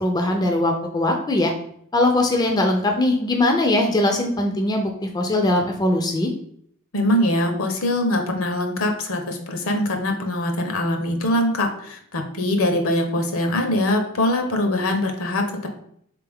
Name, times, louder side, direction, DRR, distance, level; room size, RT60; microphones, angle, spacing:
voice 1, 0.0-1.5 1.9-6.3, left 1 dB, 20° left, 3 dB, 0.4 m, -21 dB
voice 2, 6.9-15.7, left 1 dB, 70° left, 4 dB, 0.8 m, -23 dB
3.7 x 3.4 x 3.4 m, 0.68 s
head